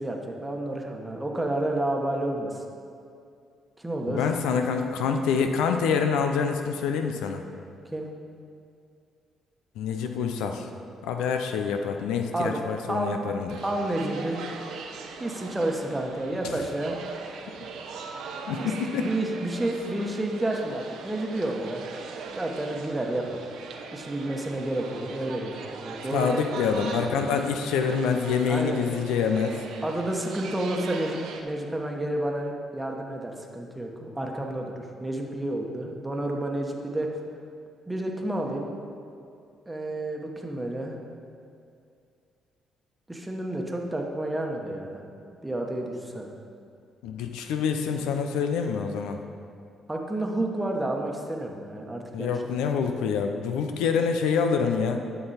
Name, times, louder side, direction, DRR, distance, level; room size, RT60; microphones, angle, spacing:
voice 1, 0.0-2.6 3.8-4.2 7.9-8.1 12.3-12.6 12.9-13.4 13.6-14.4 15.2-17.0 18.6-21.9 22.2-23.5 23.9-26.4 28.5-28.8 29.8-37.1 37.9-38.7 39.7-41.0 43.1-45.0 45.4-46.3 49.9-52.5, right 1 dB, 10° right, 1 dB, 1.2 m, -30 dB
voice 2, 4.1-7.5 9.8-10.7 11.0-13.6 18.5-19.1 26.1-29.6 47.0-49.2 52.1-55.0, left 6 dB, 90° left, 5 dB, 0.6 m, -26 dB
sound 1, 13.5-31.4, right 4 dB, 80° right, 0.8 m, -40 dB
11.0 x 6.0 x 4.2 m, 2.4 s
cardioid pair, 90°, 0 cm